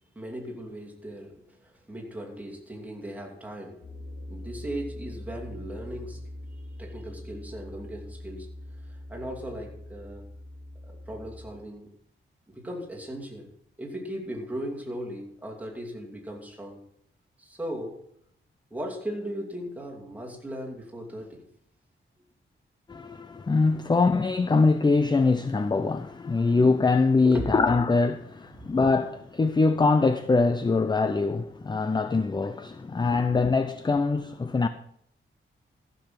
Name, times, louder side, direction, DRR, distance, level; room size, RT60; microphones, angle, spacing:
voice 1, 0.1-3.9 4.3-6.2 6.7-8.5 8.8-10.3 10.8-11.9 12.5-13.5 13.8-16.8 17.4-18.0 18.7-21.5 27.2-27.5 28.5-28.7 32.9-33.0, equal, 5° right, 2.6 m, -37 dB
sound 1, 3.8-11.5, left 1 dB, 80° left, 4.0 m, -42 dB
voice 2, 22.9-34.7, left 3 dB, 20° left, 0.5 m, -23 dB
14.5 x 6.9 x 5.9 m
wide cardioid pair, 145°, 21 cm